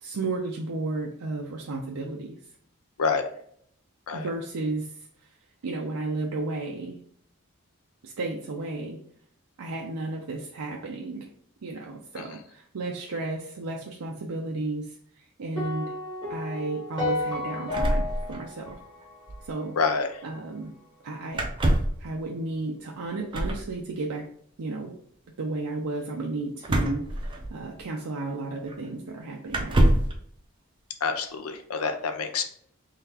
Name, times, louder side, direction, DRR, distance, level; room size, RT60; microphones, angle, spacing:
voice 1, 0.0-2.4 4.1-5.3 5.6-7.0 8.0-9.0 9.6-11.3 11.6-15.9 16.3-18.8 19.4-19.8 20.2-20.7 21.0-21.5 22.0-24.3 24.6-24.9 25.4-30.0, right 2 dB, 90° right, 0 dB, 0.5 m, -33 dB
sound 1, 15.6-19.9, left 2 dB, 20° left, 1.1 m, -33 dB
sound 2, 17.7-18.8 19.0-19.1 19.3-19.5 21.3-22.0 23.3-23.7 26.6-27.8 28.7-28.8 29.5-30.2, right 1 dB, 20° right, 0.5 m, -25 dB
voice 2, 19.8-20.1 31.0-32.4, left 5 dB, 85° left, 7 dB, 0.6 m, -27 dB
3.8 x 3.2 x 2.9 m, 0.64 s
head